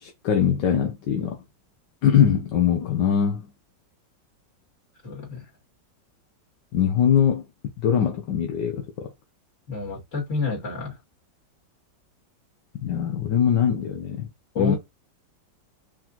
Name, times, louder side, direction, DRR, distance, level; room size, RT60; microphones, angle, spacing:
voice 1, 0.0-1.4 2.0-3.4 6.7-7.4 7.8-9.1 12.7-14.3 14.6-14.8, left 8 dB, 75° left, 1.4 m, -22 dB
voice 2, 5.0-5.5 9.7-11.0 14.5-14.8, left 4 dB, 40° left, 2.7 m, -29 dB
4.8 x 3.7 x 2.9 m
omnidirectional pair, 1.9 m